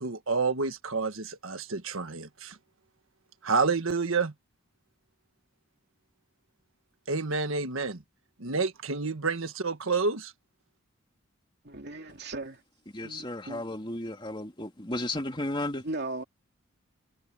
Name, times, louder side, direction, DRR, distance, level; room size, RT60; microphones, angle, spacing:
voice 1, 0.0-2.6 3.4-4.3 7.1-8.0 8.4-10.3, right 4 dB, 75° right, 1.6 m, -29 dB
voice 2, 11.6-12.6 13.0-13.6 15.8-16.2, right 2 dB, 50° right, 3.0 m, -37 dB
voice 3, 12.9-15.8, left 1 dB, 25° left, 2.7 m, -34 dB
head